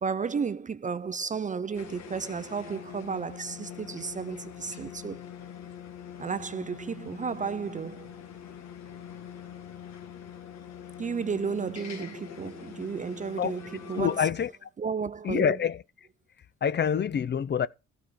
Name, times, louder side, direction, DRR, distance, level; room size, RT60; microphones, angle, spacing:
voice 1, 0.0-5.2 6.2-8.1 11.0-14.2 14.8-15.5, right 5 dB, 25° right, 0.4 m, -33 dB
sound 1, 1.7-14.2, left 8 dB, 60° left, 1.5 m, -44 dB
voice 2, 13.9-14.7 15.2-15.8 16.6-17.7, left 8 dB, 35° left, 0.5 m, -26 dB
13.5 x 4.6 x 5.0 m
cardioid pair, 90°, 30 cm